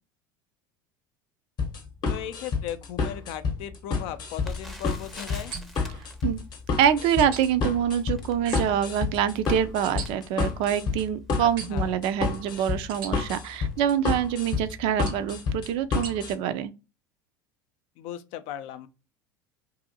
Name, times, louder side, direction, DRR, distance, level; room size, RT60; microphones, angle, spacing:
sound 1, 1.6-16.3, left 5 dB, 40° left, 0.8 m, -29 dB
voice 1, 2.1-5.5 11.4-11.9 18.0-18.9, left 10 dB, 60° left, 0.4 m, -37 dB
Crackle, 4.4-11.4 12.0-12.1 12.4-12.6 13.2-13.4 13.7-13.8, left 1 dB, ahead, 0.6 m, -45 dB
sound 2, 5.5-5.9 7.2-7.4 8.4-8.8 9.8-10.1 11.6-11.9 12.9-13.1 15.1-15.3 16.0-16.1, right 6 dB, 75° right, 0.7 m, -38 dB
voice 2, 6.8-16.7, right 9 dB, 55° right, 0.4 m, -25 dB
2.7 x 2.5 x 2.6 m
hypercardioid pair, 80°, 11 cm